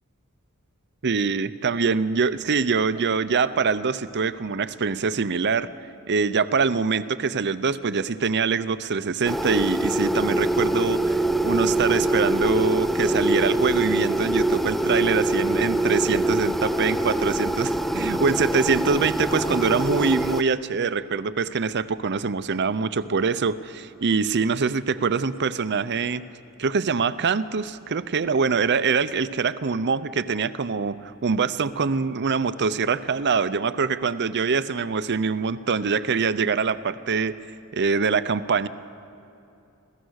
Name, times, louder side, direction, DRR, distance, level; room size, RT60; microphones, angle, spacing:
voice 1, 1.0-5.7 6.1-26.2 26.6-37.4 37.7-38.7, right 5 dB, 50° right, 14 dB, 0.7 m, -24 dB
sound 1, 9.2-20.4, right 1 dB, ahead, 0.5 m, -24 dB
27.0 x 17.0 x 6.5 m, 2.7 s
head